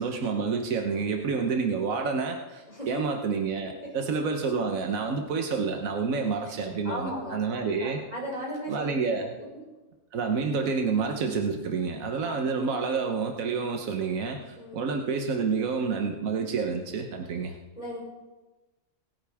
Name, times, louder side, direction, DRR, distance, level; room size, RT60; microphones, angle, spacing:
voice 1, 0.0-8.0 8.7-9.3 10.1-17.5, right 5 dB, 80° right, 3 dB, 1.5 m, -29 dB
voice 2, 6.8-9.0 12.2-12.5 14.6-14.8 17.8-18.0, equal, 30° left, -5 dB, 5.6 m, -36 dB
25.5 x 9.5 x 3.6 m, 1.2 s
omnidirectional pair, 1.4 m